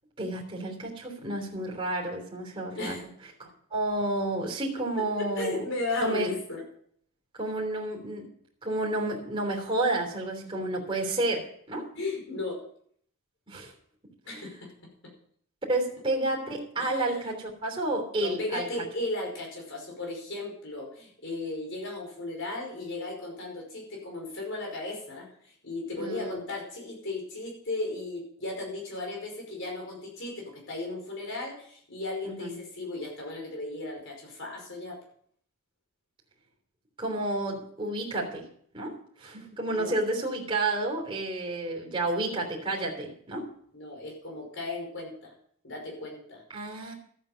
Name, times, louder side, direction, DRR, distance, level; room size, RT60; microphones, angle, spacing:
voice 1, 0.2-3.0 3.4-5.6 6.0-6.3 7.4-8.3 8.6-11.9 13.5-13.7 14.3-14.5 15.7-18.6 26.0-26.4 32.2-32.6 37.0-38.5 38.7-43.5 46.5-46.9, right 2 dB, 25° right, -1 dB, 3.3 m, -31 dB
voice 2, 5.2-6.6 12.0-12.6 14.3-14.7 16.8-17.3 18.2-35.0 39.7-39.9 43.7-45.3 45.6-46.4, left 2 dB, 60° left, 0 dB, 5.3 m, -35 dB
13.5 x 8.7 x 5.7 m, 0.63 s
head